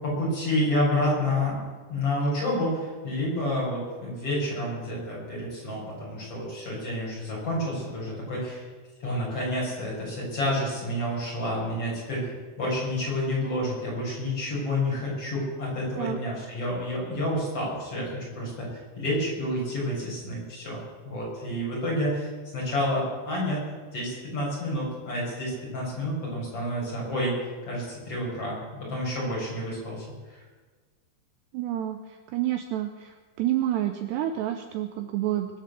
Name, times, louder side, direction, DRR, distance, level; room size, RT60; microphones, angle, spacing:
voice 1, 0.0-8.7 9.0-23.6 23.9-30.4, left 1 dB, 30° left, -5 dB, 7.1 m, -29 dB
voice 2, 31.5-32.0 32.3-35.5, right 12 dB, 90° right, 7 dB, 2.4 m, -28 dB
22.5 x 7.7 x 8.2 m, 1.4 s
omnidirectional pair, 5.9 m